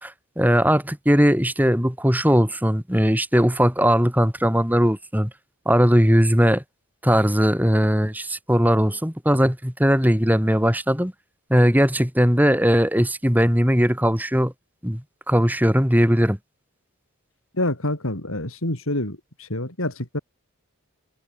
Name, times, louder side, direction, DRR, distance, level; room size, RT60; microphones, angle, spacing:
voice 1, 0.0-5.3 5.6-6.6 7.0-11.1 11.5-14.5 14.8-15.0 15.3-16.4, equal, 10° right, 5.1 m, -19 dB
voice 2, 17.6-20.2, left 1 dB, 75° left, 5.0 m, -27 dB
head